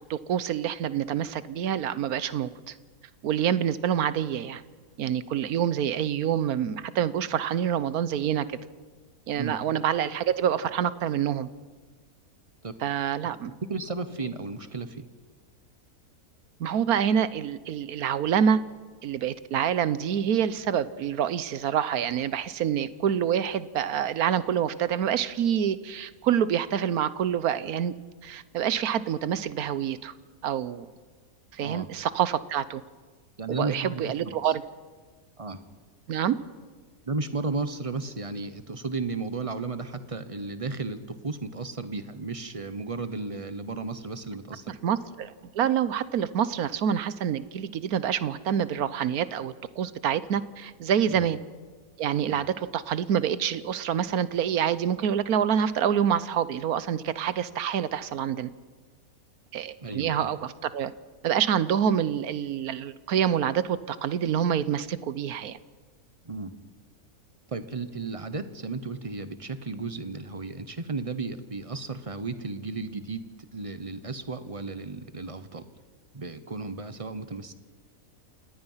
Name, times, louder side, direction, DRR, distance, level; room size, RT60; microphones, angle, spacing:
voice 1, 0.1-2.7 3.2-4.6 5.0-8.6 9.3-11.5 12.8-13.5 16.6-18.6 19.0-27.9 28.2-30.1 30.4-30.9 31.5-32.8 33.5-34.6 36.1-36.4 44.8-51.4 52.0-58.5 59.5-60.9 61.2-65.6, right 9 dB, 75° right, 15 dB, 1.3 m, -27 dB
voice 2, 13.6-15.1 31.6-31.9 33.4-34.4 35.4-35.6 37.0-44.8 51.1-51.2 52.3-52.4 59.8-60.3 66.2-66.6 67.5-73.2 73.5-75.7 76.1-77.5, right 3 dB, 25° right, 11 dB, 1.0 m, -34 dB
28.0 x 18.5 x 5.7 m, 1.5 s
omnidirectional pair, 1.6 m